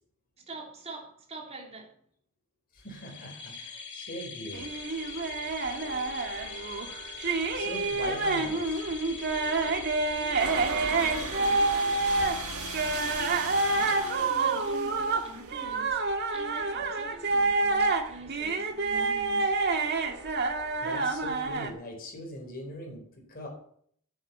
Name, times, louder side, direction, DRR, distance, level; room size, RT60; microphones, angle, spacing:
voice 1, 0.4-2.0 10.1-12.2 12.9-20.1, right 1 dB, 30° right, 3.1 m, -45 dB
voice 2, 2.7-4.7 7.5-8.8 20.8-23.0 23.3-23.5, left 1 dB, 45° left, 4.6 m, -41 dB
sound 1, 2.8-14.7, left 5 dB, 60° left, 3.4 m, -42 dB
sound 2, 4.5-12.4 12.7-21.7, right 3 dB, 50° right, 1.7 m, -28 dB
sound 3, 10.4-15.9, right 5 dB, 80° right, 1.6 m, -38 dB
9.9 x 9.3 x 8.3 m
head